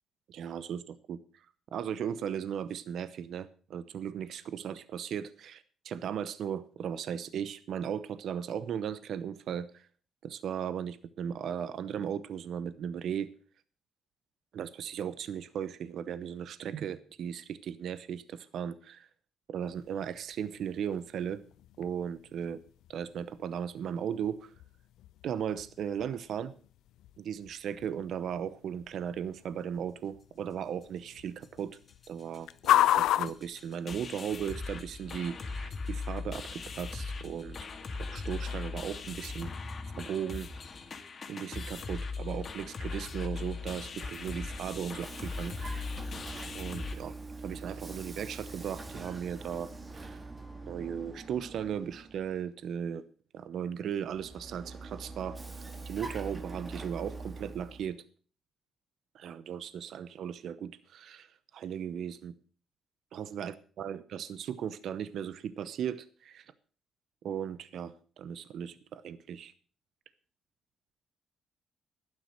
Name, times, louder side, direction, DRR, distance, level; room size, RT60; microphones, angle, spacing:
voice 1, 0.3-1.5 1.7-9.9 10.2-13.3 14.5-19.1 19.5-21.4 21.8-22.6 22.9-24.5 25.2-26.5 27.2-31.8 32.1-39.5 40.0-40.5 41.3-45.8 46.5-47.1 47.4-50.2 50.7-53.0 53.3-55.4 55.8-58.0 59.1-62.3 63.1-66.4 67.2-69.5, right 8 dB, 70° right, 15 dB, 0.8 m, -37 dB
sound 1, 19.7-34.5, left 13 dB, 85° left, 0.5 m, -36 dB
sound 2, 31.4-31.5 31.7-32.1 32.3-32.4 32.6-46.9, left 4 dB, 45° left, 2.0 m, -39 dB
Vehicle, 43.9-52.4 54.0-57.9, right 3 dB, 25° right, 1.8 m, -44 dB
12.0 x 9.8 x 6.5 m, 0.42 s
cardioid pair, 90°, 0 cm